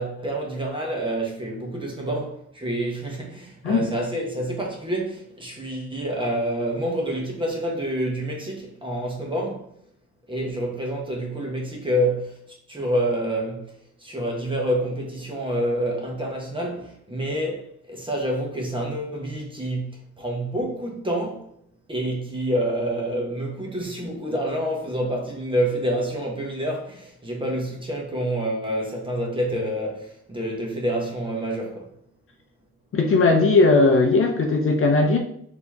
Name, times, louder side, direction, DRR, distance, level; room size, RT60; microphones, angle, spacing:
voice 1, 0.0-9.7 10.3-13.7 14.0-21.4 21.9-31.9, right 1 dB, 15° right, 1.2 m, -27 dB
voice 2, 32.9-35.2, left 3 dB, 45° left, 0.7 m, -18 dB
4.2 x 3.0 x 3.5 m
cardioid pair, 90°, 30 cm